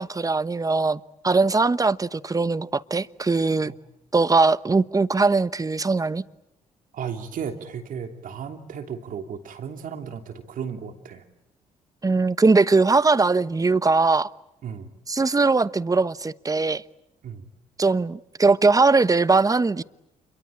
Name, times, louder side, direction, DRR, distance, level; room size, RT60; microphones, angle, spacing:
voice 1, 0.0-3.7 4.1-6.2 12.0-14.3 15.1-16.8 17.8-19.8, right 3 dB, 25° right, 1.0 m, -20 dB
voice 2, 6.9-11.2 14.6-14.9 17.2-17.5, right 7 dB, 65° right, 3.1 m, -34 dB
28.5 x 23.0 x 8.6 m
hypercardioid pair, 50°, 15 cm